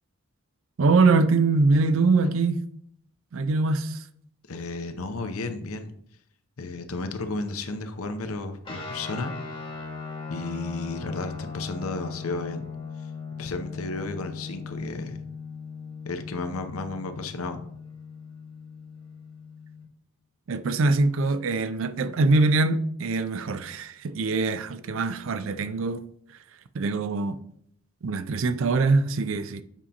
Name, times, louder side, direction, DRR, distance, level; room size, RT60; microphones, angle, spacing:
voice 1, 0.8-2.6 3.3-4.0 20.5-26.0 26.7-27.4 28.0-29.6, right 3 dB, 65° right, 0.4 m, -23 dB
voice 2, 4.5-5.9 6.6-9.3 10.3-12.6 13.4-15.2 16.0-17.6, left 3 dB, 85° left, 0.7 m, -33 dB
sound 1, 8.6-19.8, left 5 dB, 25° left, 1.2 m, -39 dB
7.3 x 2.8 x 5.1 m
head